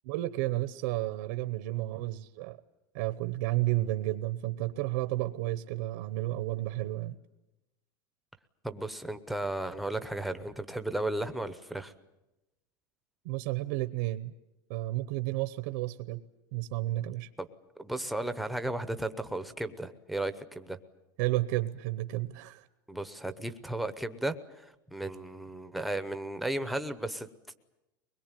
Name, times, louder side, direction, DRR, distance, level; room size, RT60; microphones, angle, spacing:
voice 1, 0.0-2.6 2.9-7.2 13.2-14.3 14.7-16.2 16.5-17.3 21.2-22.7, right 17 dB, 60° right, 12 dB, 0.9 m, -32 dB
voice 2, 8.6-11.9 17.4-17.5 17.8-20.8 22.9-27.5, right 1 dB, ahead, 9 dB, 0.8 m, -35 dB
23.0 x 21.0 x 9.1 m, 0.96 s
supercardioid pair, 180°, 11 cm